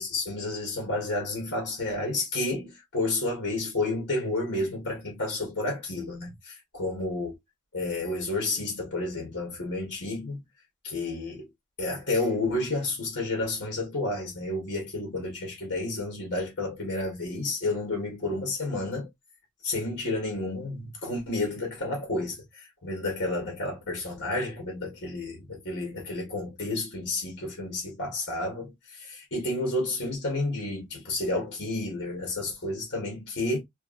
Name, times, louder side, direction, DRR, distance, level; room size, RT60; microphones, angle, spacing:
voice 1, 0.0-7.3 7.7-10.4 10.8-11.5 11.8-19.1 19.6-33.6, left 2 dB, 55° left, 1.6 m, -31 dB
3.3 x 2.9 x 2.5 m
head